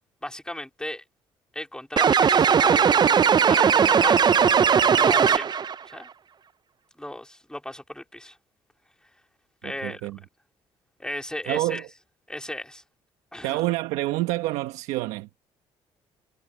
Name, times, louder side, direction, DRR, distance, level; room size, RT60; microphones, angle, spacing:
voice 1, 0.2-1.0 1.5-2.8 3.5-4.4 4.9-5.5 5.9-6.1 7.0-8.4 9.6-10.1 11.0-11.8 12.3-12.8 13.3-13.6, left 1 dB, 5° left, 3.9 m, -35 dB
sound 1, 2.0-5.7, right 7 dB, 40° right, 0.5 m, -18 dB
voice 2, 9.6-10.2 11.5-11.9 13.4-15.3, right 17 dB, 85° right, 1.4 m, -27 dB
supercardioid pair, 70°, 12 cm